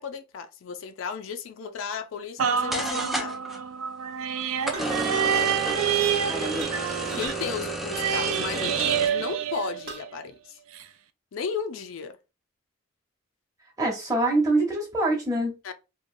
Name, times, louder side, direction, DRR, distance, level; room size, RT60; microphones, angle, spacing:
voice 1, 0.0-3.4 6.3-6.5 7.1-10.6 11.3-12.2 15.6-15.7, left 6 dB, 70° left, 0.4 m, -34 dB
sound 1, 2.4-2.5 2.7-3.6 4.6-9.1, right 1 dB, ahead, 0.3 m, -32 dB
sound 2, 2.4-10.2 10.7-10.8, right 8 dB, 85° right, 0.3 m, -28 dB
sound 3, 4.7-5.0 6.4-6.7 7.0-7.4 8.5-8.7 9.9-10.0, right 3 dB, 60° right, 0.8 m, -38 dB
voice 2, 6.3-6.7 13.8-15.5, right 2 dB, 15° right, 0.8 m, -25 dB
2.9 x 2.2 x 2.5 m
head